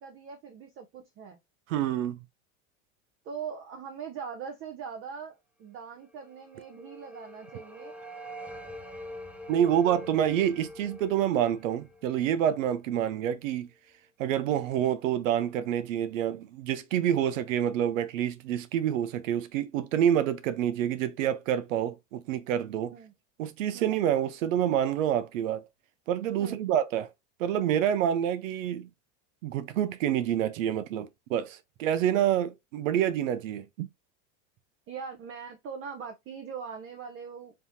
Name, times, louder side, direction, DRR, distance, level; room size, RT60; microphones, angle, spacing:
voice 1, 0.0-1.4 3.2-8.0 22.9-23.1 23.7-24.0 26.4-26.7 34.9-37.5, right 6 dB, 35° right, 0.7 m, -41 dB
voice 2, 1.7-2.2 9.5-13.7 14.2-22.9 23.4-25.6 26.1-27.1 27.4-28.9 29.4-33.9, right 10 dB, 90° right, 0.7 m, -27 dB
sound 1, 6.2-13.3, equal, 5° right, 0.4 m, -45 dB
5.4 x 2.8 x 2.6 m
supercardioid pair, 130°, 38 cm